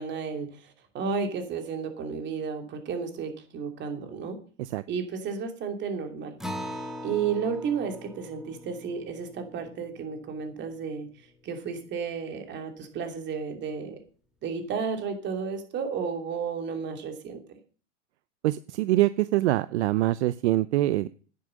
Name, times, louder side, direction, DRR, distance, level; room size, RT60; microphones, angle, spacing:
voice 1, 0.0-4.4 4.9-11.1 11.4-14.0 14.4-17.6, right 6 dB, 30° right, 5 dB, 2.8 m, -33 dB
Acoustic guitar, 6.4-11.3, left 1 dB, ahead, 1.5 m, -41 dB
voice 2, 18.4-21.1, right 16 dB, 65° right, 16 dB, 0.6 m, -24 dB
10.0 x 10.0 x 6.4 m, 0.41 s
hypercardioid pair, 130°, 37 cm